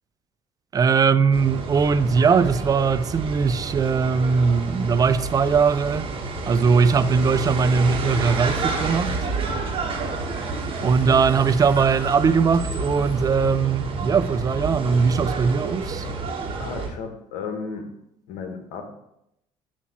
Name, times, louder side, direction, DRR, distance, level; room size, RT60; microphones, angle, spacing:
voice 1, 0.7-6.1 6.5-9.2 10.8-16.1, right 5 dB, 30° right, 0.4 m, -20 dB
sound 1, 1.3-16.9, right 3 dB, 45° right, 1.4 m, -29 dB
voice 2, 16.6-17.9 18.3-18.9, left 5 dB, 75° left, 1.2 m, -33 dB
7.1 x 2.9 x 5.9 m
supercardioid pair, 90°, 13 cm